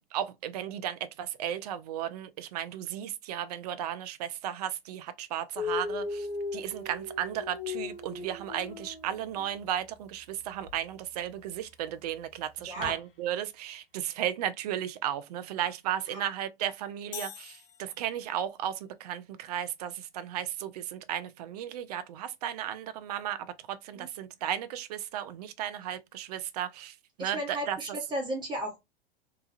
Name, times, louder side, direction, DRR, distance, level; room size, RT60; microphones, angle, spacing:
voice 1, 0.1-27.8, right 10 dB, 40° right, 0.4 m, -35 dB
Dog, 5.6-9.5 10.6-10.8 12.8-12.9, left 4 dB, 65° left, 0.8 m, -37 dB
voice 2, 12.6-13.0 16.1-16.2 23.9-24.1 27.2-28.8, equal, 15° right, 0.9 m, -34 dB
sound 1, 17.1-18.5, left 9 dB, 30° left, 0.5 m, -44 dB
2.9 x 2.2 x 2.4 m
figure-of-eight pair, 95°, 30 cm